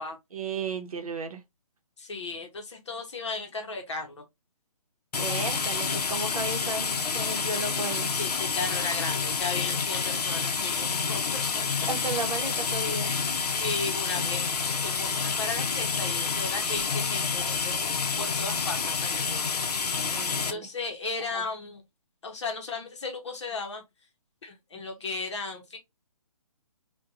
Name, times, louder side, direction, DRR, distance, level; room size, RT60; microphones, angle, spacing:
voice 1, 0.3-1.4 5.2-8.1 11.8-13.1 20.0-20.7 21.3-21.4, right 3 dB, 65° right, 0.7 m, -34 dB
voice 2, 2.0-4.2 7.2-7.7 8.1-11.9 13.0-13.1 13.5-19.6 20.4-21.8 22.2-23.8 24.4-25.8, left 3 dB, 50° left, 0.7 m, -36 dB
sound 1, 5.1-20.5, left 5 dB, 90° left, 0.6 m, -28 dB
2.4 x 2.2 x 2.7 m
hypercardioid pair, 175°, 20 cm